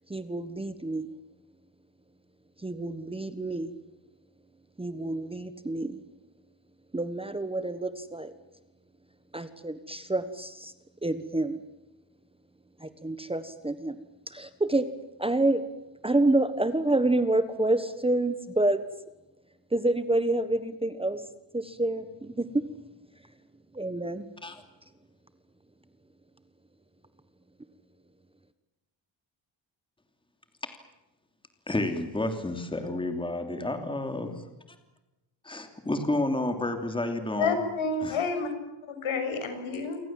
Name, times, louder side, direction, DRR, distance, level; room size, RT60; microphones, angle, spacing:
voice 1, 0.1-1.1 2.6-3.7 4.8-6.0 6.9-8.3 9.3-10.7 11.0-11.6 12.8-14.0 14.3-14.9 15.2-15.6 16.0-18.8 19.7-21.2 21.5-22.7 23.7-24.2, right 2 dB, 10° right, 1.3 m, -28 dB
voice 2, 31.7-34.8 35.4-37.6 38.0-38.2, left 2 dB, 10° left, 3.0 m, -31 dB
voice 3, 37.4-38.5 38.8-40.0, left 4 dB, 75° left, 7.0 m, -29 dB
29.0 x 24.5 x 7.5 m
wide cardioid pair, 175°, 47 cm